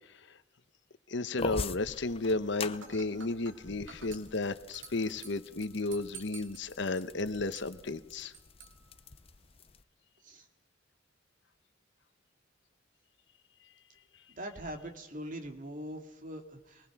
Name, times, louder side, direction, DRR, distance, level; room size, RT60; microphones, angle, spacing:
voice 1, 1.1-8.3, left 2 dB, 65° left, 12 dB, 1.0 m, -33 dB
sound 1, 1.4-9.8, left 4 dB, 30° left, 0.6 m, -44 dB
Dishes pots and pans / Glass, 2.7-9.7, right 6 dB, 70° right, 3.0 m, -53 dB
voice 2, 14.3-16.9, equal, 45° right, 5 dB, 2.4 m, -42 dB
24.5 x 19.5 x 6.1 m, 1.0 s
head